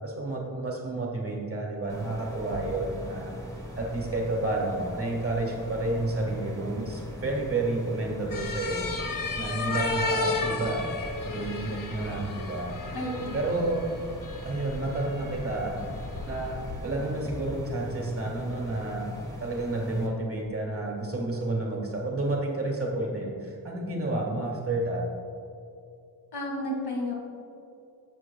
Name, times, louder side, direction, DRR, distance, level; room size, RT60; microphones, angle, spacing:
voice 1, 0.0-3.3 3.8-8.9 9.4-10.9 11.2-12.8 13.3-13.8 14.4-15.8 16.3-19.1 19.4-25.0, right 2 dB, 35° right, -1 dB, 1.5 m, -30 dB
sound 1, 1.9-20.1, equal, 10° left, 1.3 m, -41 dB
sound 2, 8.3-16.8, left 3 dB, 55° left, 0.7 m, -34 dB
voice 2, 12.9-13.4 26.3-27.1, left 1 dB, 80° left, 0 dB, 1.7 m, -32 dB
13.5 x 7.2 x 2.2 m, 2.6 s
wide cardioid pair, 150°, 39 cm